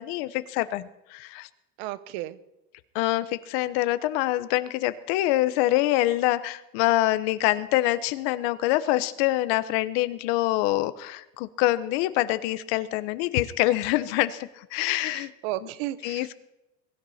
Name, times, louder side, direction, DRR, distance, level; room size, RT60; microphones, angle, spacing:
voice 1, 0.0-1.5 2.9-15.3 16.0-16.3, left 16 dB, 85° left, 14 dB, 1.0 m, -25 dB
voice 2, 1.8-2.4 15.0-16.3, right 15 dB, 80° right, 15 dB, 1.0 m, -34 dB
22.5 x 13.0 x 4.3 m, 0.92 s
cardioid pair, 170°, 29 cm